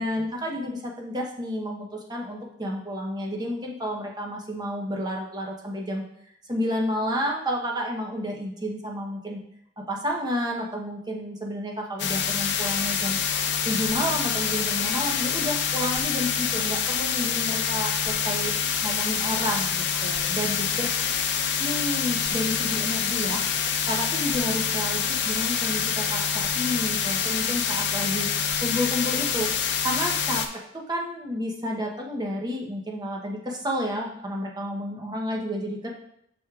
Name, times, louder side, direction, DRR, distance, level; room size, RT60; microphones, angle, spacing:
voice 1, 0.0-6.0 6.5-9.4 9.9-13.2 13.7-18.5 18.8-19.7 20.0-20.9 21.6-23.4 23.9-25.0 25.2-28.3 28.6-29.5 29.8-30.4 30.9-35.9, equal, 20° right, 0 dB, 0.9 m, -30 dB
sound 1, 12.0-30.5, left 7 dB, 60° left, 0.6 m, -26 dB
7.7 x 6.2 x 2.4 m, 0.74 s
head